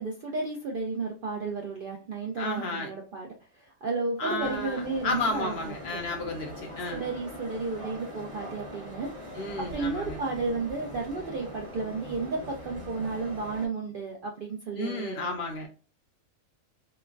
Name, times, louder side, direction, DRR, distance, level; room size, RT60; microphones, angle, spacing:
voice 1, 0.0-3.3 3.5-5.7 6.9-15.3, right 3 dB, 65° right, 0 dB, 0.5 m, -33 dB
voice 2, 2.4-2.9 4.2-7.0 9.4-10.2 14.7-15.7, left 2 dB, 55° left, 2 dB, 0.8 m, -32 dB
sound 1, 4.4-13.7, left 1 dB, 25° right, 0.9 m, -42 dB
3.0 x 2.1 x 2.4 m, 0.35 s
omnidirectional pair, 1.4 m